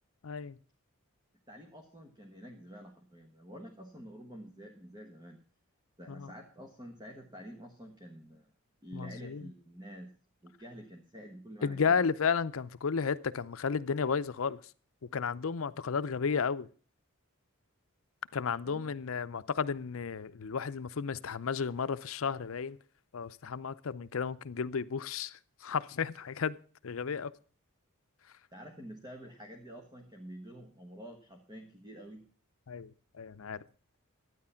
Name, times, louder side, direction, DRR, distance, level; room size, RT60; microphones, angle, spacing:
voice 1, 0.2-0.6 6.1-6.3 8.9-9.5 11.6-14.7 15.0-16.7 18.3-22.8 23.1-26.6 26.8-27.3 32.7-33.6, left 6 dB, 70° left, 0.6 m, -33 dB
voice 2, 1.5-5.4 6.0-8.5 8.8-10.1 10.4-12.0 18.6-18.9 28.5-32.3, equal, 20° right, 1.3 m, -48 dB
12.0 x 9.5 x 5.7 m
head